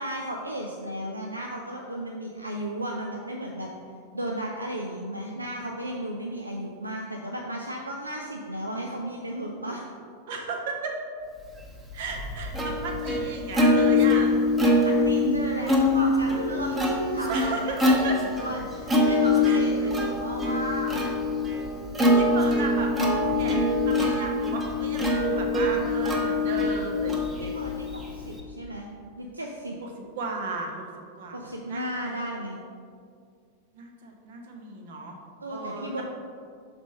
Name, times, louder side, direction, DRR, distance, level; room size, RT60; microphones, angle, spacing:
voice 1, 0.0-3.7 4.1-9.8 14.8-21.0 27.4-28.9 29.2-29.8 31.3-32.6 35.4-36.0, right 1 dB, 80° right, 0 dB, 0.5 m, -34 dB
voice 2, 10.3-11.0 11.9-14.4 17.3-18.2 19.4-19.6 22.0-27.6 29.8-29.9 30.1-30.8 31.2-31.4 31.7-32.4 33.7-35.2 35.5-36.0, right 3 dB, 55° right, 2 dB, 1.1 m, -35 dB
Plucked string instrument, 11.7-28.4, left 2 dB, 15° right, 1.1 m, -24 dB
5.9 x 4.4 x 5.3 m, 2.2 s
figure-of-eight pair, 90°, 0 cm